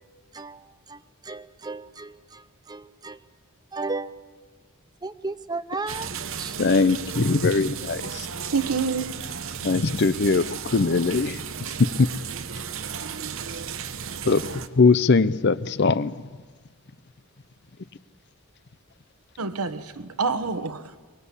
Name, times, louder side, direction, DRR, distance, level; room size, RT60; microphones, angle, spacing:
voice 1, 1.3-2.1 2.7-3.2 3.7-4.1 5.0-6.1 6.4-6.5, right 3 dB, 20° right, 0.7 m, -33 dB
sound 1, 5.9-14.7, right 7 dB, 60° right, 1.0 m, -34 dB
voice 2, 6.6-8.3 9.6-11.4 12.0-12.1 14.3-14.4 14.8-16.1, left 4 dB, 50° left, 0.6 m, -21 dB
voice 3, 8.5-9.1 19.4-21.0, right 4 dB, 85° right, 1.3 m, -27 dB
23.5 x 21.0 x 8.4 m
head